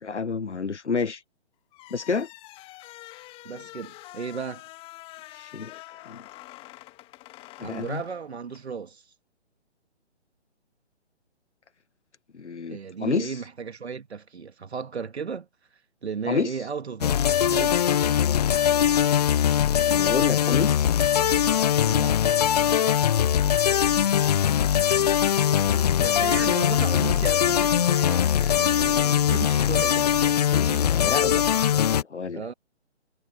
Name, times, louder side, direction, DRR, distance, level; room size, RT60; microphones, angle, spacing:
voice 1, 0.0-1.2 1.9-2.3 5.3-6.2 7.6-8.0 12.3-13.4 16.3-16.6 19.9-20.9 23.7-23.9 25.7-26.4 30.5-31.4 31.7-32.4, left 5 dB, 80° left, 1.3 m, -30 dB
sound 1, 1.7-8.7, left 18 dB, 15° left, 1.9 m, -46 dB
voice 2, 3.4-4.6 7.6-9.0 12.7-15.5 16.0-18.2 21.8-22.3 26.0-30.3 30.6-30.9 32.3-32.5, right 6 dB, 70° right, 2.2 m, -35 dB
sound 2, 17.0-32.0, left 9 dB, 35° left, 0.7 m, -21 dB
figure-of-eight pair, 145°, 34 cm